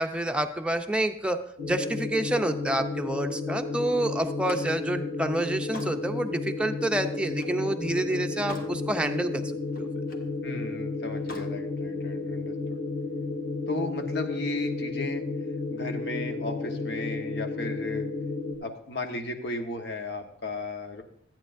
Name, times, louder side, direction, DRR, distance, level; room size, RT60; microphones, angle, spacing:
voice 1, 0.0-9.9, right 1 dB, 5° right, 5 dB, 0.5 m, -28 dB
sound 1, 1.6-18.6, left 3 dB, 90° left, 2.5 m, -32 dB
Slam, 4.2-7.7 8.1-8.8 9.2-10.3 11.1-11.6, left 1 dB, 50° left, 1.3 m, -45 dB
voice 2, 10.4-12.8 13.7-15.2 15.7-18.1 18.6-21.0, left 2 dB, 70° left, 5 dB, 1.1 m, -35 dB
13.5 x 9.0 x 2.6 m, 0.67 s
head